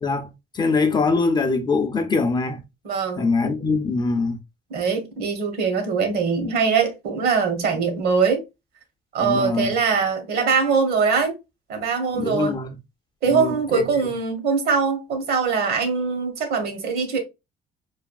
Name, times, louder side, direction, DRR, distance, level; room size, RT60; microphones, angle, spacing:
voice 1, 0.0-2.6 3.2-4.4 9.2-9.7 12.1-12.8 13.3-13.8, left 4 dB, 25° left, 0.5 m, -23 dB
voice 2, 2.8-3.2 4.7-8.4 9.1-11.4 11.7-12.6 13.2-17.2, right 5 dB, 65° right, 1.1 m, -22 dB
3.3 x 2.3 x 2.2 m
cardioid pair, 110°, 17 cm